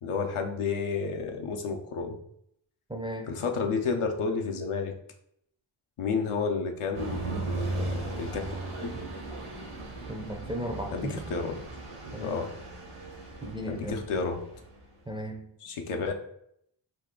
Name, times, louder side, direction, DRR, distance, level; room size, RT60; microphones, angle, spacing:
voice 1, 0.0-2.2 3.3-4.9 6.0-8.5 8.8-9.0 10.9-11.5 12.2-12.5 13.7-14.4 15.6-16.1, left 5 dB, 85° left, 3 dB, 0.6 m, -31 dB
voice 2, 2.9-3.3 10.1-11.2 12.1-12.4 13.4-14.0 15.1-15.5, right 1 dB, 10° right, 3 dB, 0.3 m, -36 dB
sound 1, 6.9-15.0, right 2 dB, 85° right, 1.0 m, -37 dB
2.7 x 2.3 x 3.6 m, 0.72 s
cardioid pair, 45°, 50 cm